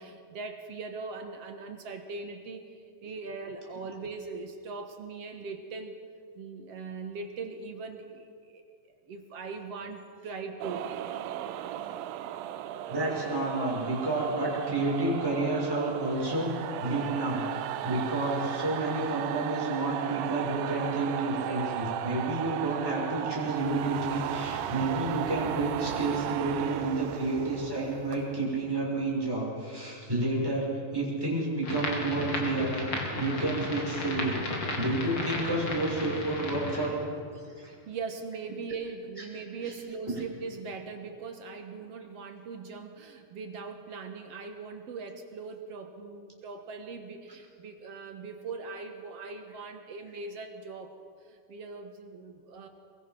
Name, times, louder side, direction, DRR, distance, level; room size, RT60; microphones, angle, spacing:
voice 1, 0.0-2.7 3.0-5.9 6.4-8.8 9.1-10.9 28.1-28.3 37.6-50.9 51.3-52.7, right 4 dB, 55° right, 5 dB, 2.0 m, -40 dB
sound 1, 10.6-29.1, right 12 dB, 85° right, 2.5 m, -36 dB
voice 2, 12.9-30.7 30.9-32.9 33.2-34.4 34.7-37.7 39.2-39.3 40.1-40.2, right 2 dB, 5° right, -5 dB, 6.4 m, -30 dB
sound 2, 31.6-36.9, left 2 dB, 40° left, 3.3 m, -34 dB
24.0 x 22.0 x 6.1 m, 2.1 s
omnidirectional pair, 4.0 m